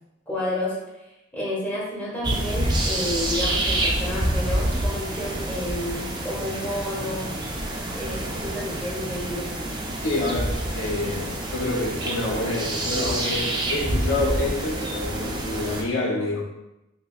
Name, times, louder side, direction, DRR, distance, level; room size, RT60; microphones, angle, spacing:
voice 1, 0.3-0.8 1.3-7.3 7.9-9.5, left 1 dB, 10° left, -6 dB, 0.9 m, -30 dB
sound 1, 2.2-15.8, right 1 dB, 20° right, 0.4 m, -27 dB
voice 2, 10.0-16.4, left 2 dB, 90° left, -3 dB, 0.9 m, -27 dB
5.6 x 2.2 x 2.3 m, 0.93 s
head